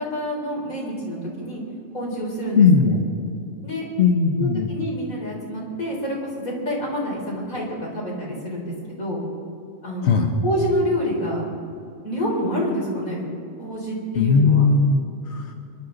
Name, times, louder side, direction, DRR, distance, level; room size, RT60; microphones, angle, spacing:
voice 1, 0.0-1.6 1.9-3.0 3.6-3.9 4.4-9.2 9.8-11.5 12.0-13.3 13.6-14.7, equal, 90° left, -4 dB, 4.6 m, -27 dB
voice 2, 2.5-3.0 4.0-4.7 10.0-10.3 14.2-15.0 15.3-15.5, left 5 dB, 55° left, 3 dB, 1.3 m, -17 dB
27.0 x 11.5 x 3.9 m, 2.6 s
omnidirectional pair, 1.4 m